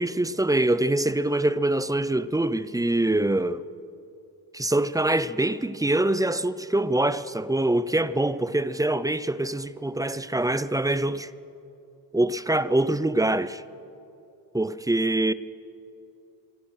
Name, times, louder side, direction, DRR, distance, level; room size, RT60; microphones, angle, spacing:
voice 1, 0.0-3.6 4.5-11.3 12.1-13.6 14.5-15.3, right 1 dB, 10° right, 0.4 m, -24 dB
25.0 x 24.5 x 6.3 m
wide cardioid pair, 150°, 41 cm